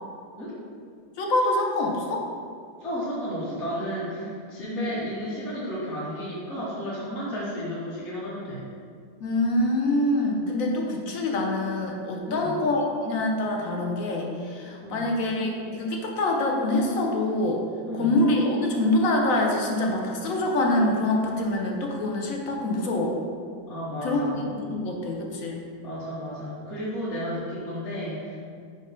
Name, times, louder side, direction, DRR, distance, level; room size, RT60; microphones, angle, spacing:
voice 1, 1.2-2.2 4.6-4.9 9.2-17.6 18.0-23.2 24.0-25.6, left 2 dB, 55° left, 0 dB, 0.9 m, -25 dB
voice 2, 2.8-8.6 12.2-12.6 14.8-15.1 17.8-18.2 23.7-24.5 25.8-28.4, equal, 40° left, -9 dB, 1.5 m, -33 dB
5.4 x 5.3 x 5.1 m, 2.2 s
omnidirectional pair, 2.3 m